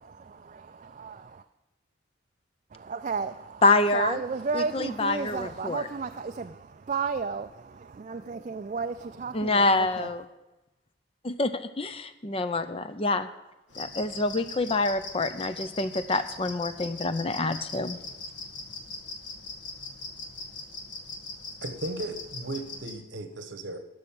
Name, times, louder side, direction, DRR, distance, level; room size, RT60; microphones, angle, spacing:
voice 1, 0.0-1.4 2.7-3.6 3.9-10.1, right 5 dB, 40° right, 0.3 m, -33 dB
voice 2, 3.6-4.2 4.5-5.9 9.3-10.2 11.2-13.3 13.8-18.0, left 2 dB, 30° left, 0.5 m, -26 dB
sound 1, 13.7-22.9, left 3 dB, 75° left, 1.7 m, -41 dB
voice 3, 21.6-23.8, right 2 dB, 70° right, 1.2 m, -36 dB
12.0 x 6.3 x 7.3 m
head